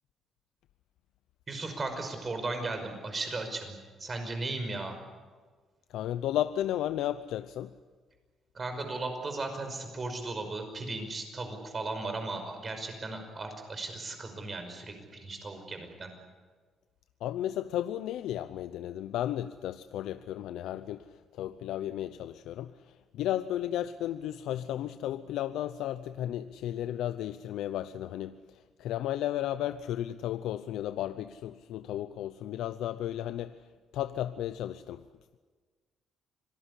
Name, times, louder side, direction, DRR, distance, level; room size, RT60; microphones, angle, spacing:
voice 1, 1.5-5.0 8.5-16.1, right 3 dB, 30° right, 6 dB, 5.5 m, -36 dB
voice 2, 5.9-7.7 17.2-33.6 33.9-35.0, left 12 dB, 85° left, 12 dB, 0.7 m, -34 dB
26.0 x 18.5 x 9.9 m, 1.5 s
cardioid pair, 120°, 0 cm